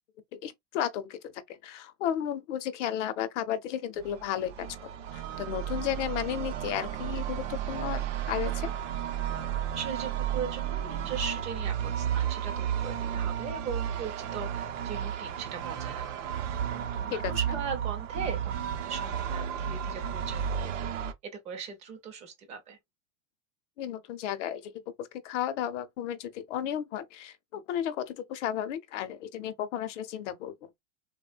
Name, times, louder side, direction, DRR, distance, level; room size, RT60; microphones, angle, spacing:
voice 1, 0.3-8.7 17.1-17.3 23.8-30.5, left 10 dB, 70° left, 0.7 m, -34 dB
sound 1, 4.0-21.1, right 9 dB, 75° right, 0.6 m, -33 dB
voice 2, 9.7-16.2 16.7-20.7 21.2-22.8, right 6 dB, 20° right, 0.5 m, -39 dB
3.1 x 2.1 x 2.4 m
supercardioid pair, 160°, 37 cm